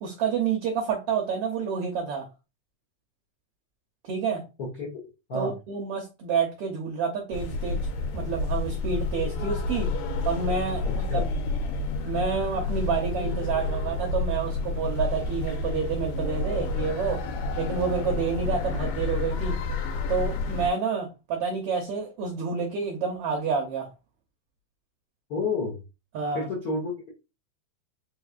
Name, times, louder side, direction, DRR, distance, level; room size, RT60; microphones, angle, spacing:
voice 1, 0.0-2.3 4.1-4.4 5.3-7.8 8.1-9.9 10.2-11.3 12.0-17.2 17.6-19.6 20.1-23.9 26.1-26.5, right 6 dB, 75° right, 1.4 m, -29 dB
sound 1, 7.3-20.7, left 3 dB, 85° left, 2.2 m, -29 dB
voice 2, 10.8-11.2 25.3-25.8 26.3-26.9, left 2 dB, 70° left, 0.8 m, -30 dB
4.6 x 3.5 x 2.4 m
omnidirectional pair, 3.5 m